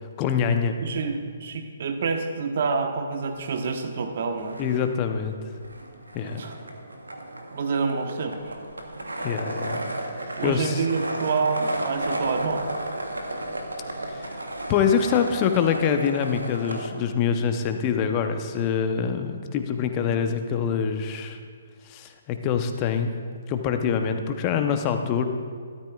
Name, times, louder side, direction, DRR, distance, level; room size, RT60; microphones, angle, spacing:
voice 1, 0.2-0.8 4.6-5.4 6.1-6.5 9.2-9.8 10.4-10.8 14.1-14.4 14.7-21.4 21.8-23.1 23.5-25.2, left 7 dB, 30° left, 7 dB, 0.8 m, -25 dB
voice 2, 0.8-4.6 6.2-6.6 7.5-8.5 10.4-12.7, right 4 dB, 55° right, 5 dB, 1.1 m, -27 dB
sound 1, 3.3-4.1 4.3-16.9, right 1 dB, 85° right, 1.1 m, -34 dB
13.0 x 12.5 x 2.4 m, 2.1 s
figure-of-eight pair, 130°, 0 cm